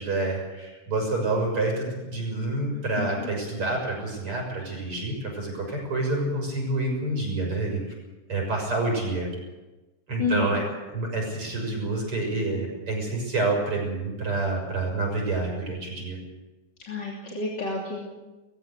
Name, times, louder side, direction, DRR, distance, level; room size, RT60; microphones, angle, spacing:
voice 1, 0.0-7.8 8.3-9.3 10.1-10.6 10.9-16.2, right 2 dB, 40° right, 0 dB, 7.5 m, -28 dB
voice 2, 10.2-10.6 16.8-18.0, left 4 dB, 35° left, -2 dB, 3.3 m, -29 dB
21.5 x 15.5 x 8.1 m, 1.1 s
omnidirectional pair, 3.7 m